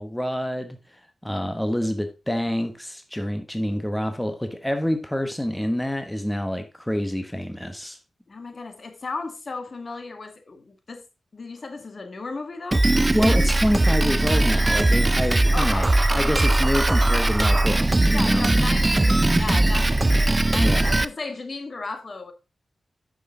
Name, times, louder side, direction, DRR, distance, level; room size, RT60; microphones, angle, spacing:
voice 1, 0.0-8.0 13.1-18.5 20.6-20.9, equal, 10° left, 1.1 m, -27 dB
voice 2, 8.3-11.1 11.3-12.9 15.5-16.0 18.1-22.3, left 3 dB, 50° left, 1.9 m, -35 dB
Drum kit, 12.7-21.0, right 2 dB, 25° right, 0.6 m, -20 dB
9.3 x 6.3 x 3.8 m
cardioid pair, 70°, 0 cm